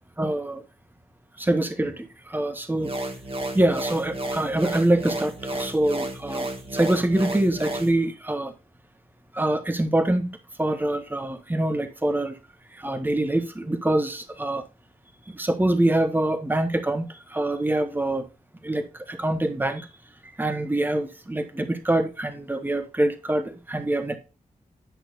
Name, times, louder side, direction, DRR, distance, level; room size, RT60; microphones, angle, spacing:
voice 1, 0.2-0.6 1.4-2.9 3.5-8.5 9.3-12.4 12.7-14.6 15.3-18.3 18.6-19.9 20.4-24.2, right 1 dB, 10° right, 1.1 m, -25 dB
sound 1, 2.8-7.9, right 1 dB, 35° right, 1.8 m, -32 dB
10.5 x 6.0 x 2.5 m
cardioid pair, 60°, 15 cm